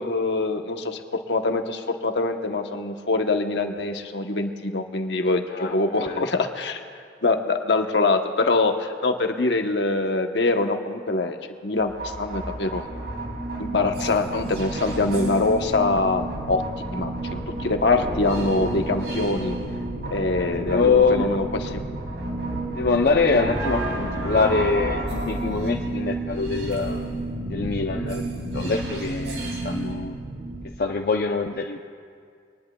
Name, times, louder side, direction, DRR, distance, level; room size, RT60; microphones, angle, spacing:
voice 1, 0.0-6.8 7.2-11.4 11.6-12.9 13.6-16.6 16.9-19.6 20.1-21.8, left 3 dB, 75° left, 5 dB, 1.0 m, -24 dB
voice 2, 5.5-6.2 20.4-21.3 22.7-27.1 27.5-30.1 30.8-31.8, left 4 dB, 55° left, 2 dB, 0.6 m, -24 dB
sound 1, 11.8-30.7, right 1 dB, 85° right, 2.8 m, -30 dB
24.5 x 19.5 x 2.3 m, 2.2 s
head